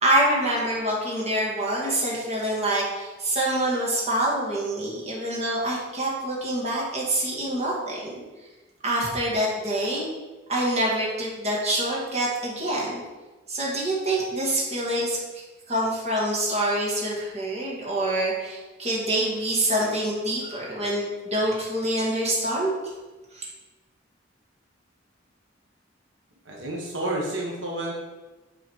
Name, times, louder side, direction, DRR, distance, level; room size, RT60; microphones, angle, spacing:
voice 1, 0.0-8.2 8.8-10.1 10.5-13.0 13.5-15.2 15.7-22.7 23.3-23.4, right 1 dB, 35° right, -5 dB, 1.9 m, -26 dB
voice 2, 26.4-27.9, right 1 dB, 85° right, -2 dB, 1.3 m, -30 dB
7.6 x 4.0 x 4.6 m, 1.2 s
head